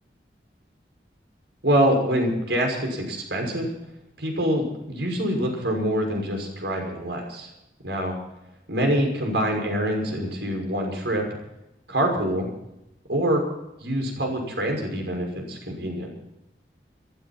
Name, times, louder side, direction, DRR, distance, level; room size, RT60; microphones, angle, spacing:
voice 1, 1.6-3.7 4.2-7.5 7.8-8.1 8.7-11.2 11.9-12.5 13.1-13.4 13.8-16.1, equal, 75° right, 2 dB, 6.2 m, -25 dB
22.5 x 13.5 x 4.5 m, 0.87 s
head